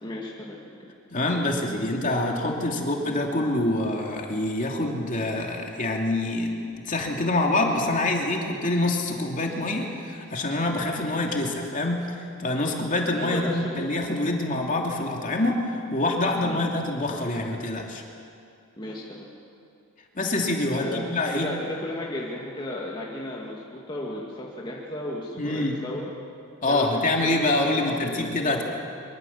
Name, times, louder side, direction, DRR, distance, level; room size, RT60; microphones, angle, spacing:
voice 1, 0.0-0.7 13.2-13.8 16.4-16.7 18.8-19.3 20.8-26.1 26.7-28.6, left 1 dB, 20° left, -4 dB, 2.2 m, -34 dB
voice 2, 1.1-18.0 20.1-21.5 25.4-25.8 26.6-28.6, left 2 dB, 40° left, 0 dB, 2.9 m, -26 dB
24.0 x 24.0 x 7.4 m, 2.5 s
head